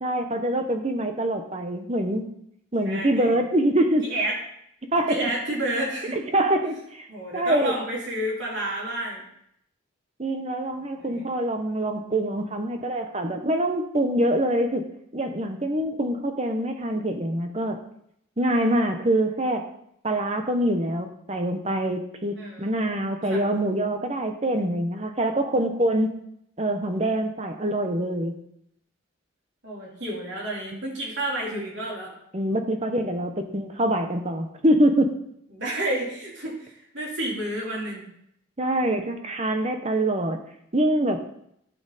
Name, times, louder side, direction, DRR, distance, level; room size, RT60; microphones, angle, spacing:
voice 1, 0.0-2.2 2.7-4.1 4.9-5.3 6.3-7.1 7.3-7.7 10.2-14.9 15.1-17.8 18.4-19.6 20.0-26.1 26.6-28.4 30.7-30.8 32.3-35.1 38.6-40.4 40.7-41.2, right 1 dB, 30° right, 6 dB, 1.0 m, -25 dB
voice 2, 2.8-3.4 4.0-4.4 5.1-6.2 7.1-9.2 11.0-11.3 22.3-22.7 23.2-23.4 29.6-32.1 35.5-38.0, right 1 dB, 60° right, -4 dB, 3.5 m, -30 dB
14.0 x 5.9 x 4.2 m, 0.73 s
head